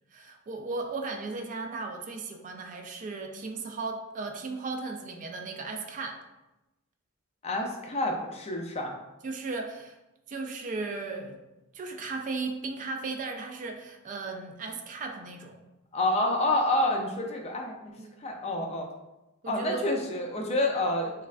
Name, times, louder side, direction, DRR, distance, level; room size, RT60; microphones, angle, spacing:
voice 1, 0.1-6.2 9.2-10.0 10.3-11.4 11.7-15.6 18.0-18.2 19.4-19.9, right 3 dB, 40° right, 4 dB, 0.3 m, -36 dB
voice 2, 7.4-8.9 15.9-17.7 18.2-18.9 19.5-21.1, left 1 dB, 30° left, 2 dB, 0.4 m, -28 dB
3.4 x 3.2 x 2.4 m, 0.99 s
head